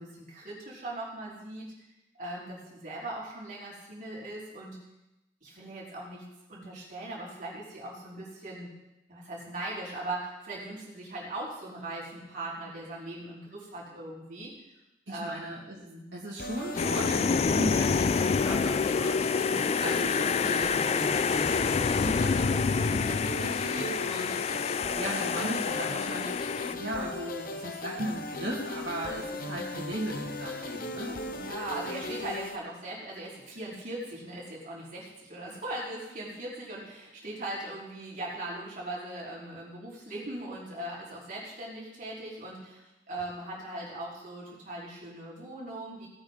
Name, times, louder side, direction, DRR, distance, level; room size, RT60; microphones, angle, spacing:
voice 1, 0.0-1.7 2.2-4.8 5.4-6.2 6.5-8.7 9.1-14.5 15.1-16.1 19.4-19.7 29.5-29.7 31.3-46.1, right 1 dB, 50° right, -6 dB, 4.7 m, -39 dB
voice 2, 15.1-31.5, right 1 dB, 75° right, -6 dB, 2.4 m, -38 dB
sound 1, 16.4-32.6, left 2 dB, 50° left, 1.0 m, -37 dB
sound 2, 16.8-26.7, left 5 dB, 35° left, 0.3 m, -27 dB
17.5 x 8.8 x 4.0 m, 0.96 s
head